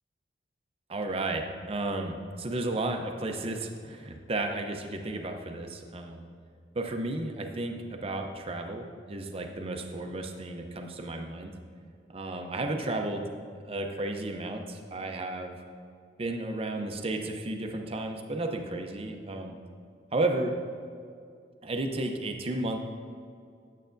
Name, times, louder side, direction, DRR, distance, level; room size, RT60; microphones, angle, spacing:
voice 1, 0.9-6.3 6.7-11.5 12.1-13.2 13.6-15.6 16.2-19.5 20.1-20.5 21.6-22.8, right 2 dB, 30° right, 4 dB, 0.6 m, -33 dB
8.9 x 8.3 x 2.6 m, 2.3 s
head